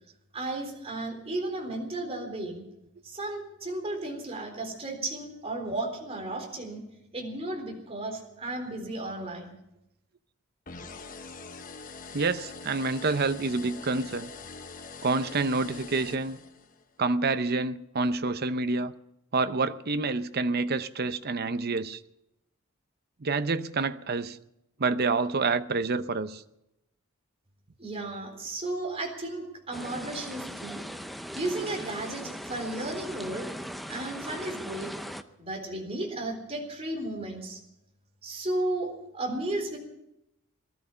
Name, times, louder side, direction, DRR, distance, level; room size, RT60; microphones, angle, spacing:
voice 1, 0.3-2.6 3.0-6.8 7.1-9.6 27.8-30.8 31.3-33.5 33.9-34.9 35.4-37.6 38.2-39.8, right 2 dB, 30° right, 4.0 m, -34 dB
sound 1, 10.7-16.8, left 4 dB, 40° left, 1.1 m, -44 dB
voice 2, 12.1-14.3 15.0-16.4 17.0-18.9 19.3-22.0 23.2-24.4 24.8-26.4, right 3 dB, 50° right, 0.7 m, -28 dB
sound 2, 29.7-35.2, equal, ahead, 0.7 m, -39 dB
19.0 x 13.0 x 5.6 m
head